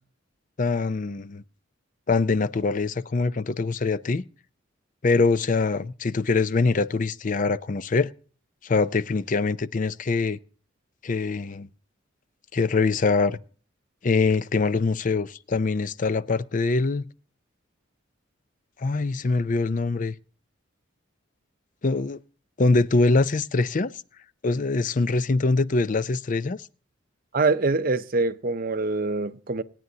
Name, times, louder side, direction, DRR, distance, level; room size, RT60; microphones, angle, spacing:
voice 1, 0.6-1.4 2.1-4.2 5.0-8.1 8.6-10.4 11.0-11.7 12.5-13.4 14.0-17.0 18.8-20.1 21.8-22.2 22.6-23.9 24.4-26.7, left 3 dB, 40° left, 0.5 m, -23 dB
voice 2, 27.3-29.6, right 3 dB, 45° right, 0.6 m, -24 dB
27.5 x 9.2 x 2.8 m
head